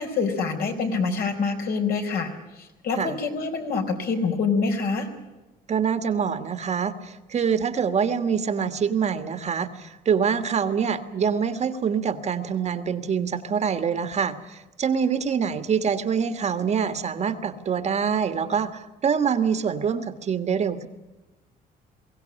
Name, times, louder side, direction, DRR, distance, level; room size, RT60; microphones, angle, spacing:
voice 1, 0.0-5.1, left 4 dB, 65° left, 4 dB, 4.4 m, -26 dB
voice 2, 5.7-20.9, right 7 dB, 40° right, 9 dB, 1.6 m, -25 dB
22.5 x 16.5 x 9.9 m, 1.1 s
cardioid pair, 110°, 17 cm